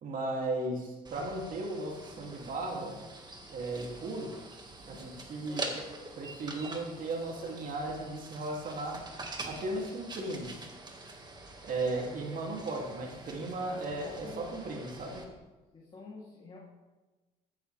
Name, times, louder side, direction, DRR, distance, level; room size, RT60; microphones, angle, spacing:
voice 1, 0.0-3.0 3.5-4.4 4.8-5.7 6.1-9.1 9.4-10.6 11.6-15.3, right 2 dB, 55° right, 0 dB, 2.7 m, -36 dB
sound 1, 1.0-15.2, right 2 dB, 25° right, 1.9 m, -45 dB
voice 2, 5.5-5.8 11.8-12.2 12.5-12.8 13.1-13.2 13.7-14.7 15.7-16.6, left 3 dB, 30° left, -5 dB, 3.0 m, -49 dB
15.0 x 11.5 x 3.5 m, 1.2 s
cardioid pair, 110°, 17 cm